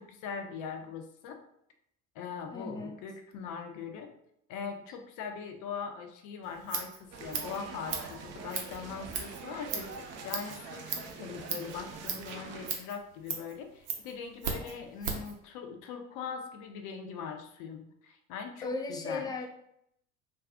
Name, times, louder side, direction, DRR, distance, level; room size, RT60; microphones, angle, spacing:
voice 1, 0.0-1.4 2.1-4.1 4.5-19.3, left 6 dB, 50° left, 5 dB, 0.6 m, -41 dB
voice 2, 2.5-3.0 14.6-14.9 18.6-19.5, left 3 dB, 10° left, 3 dB, 0.3 m, -37 dB
Scissors, 6.4-15.4, right 6 dB, 75° right, 0.7 m, -38 dB
sound 1, 7.1-12.7, right 4 dB, 40° right, 0.6 m, -44 dB
2.5 x 2.3 x 3.5 m, 0.76 s
hypercardioid pair, 65°, 40 cm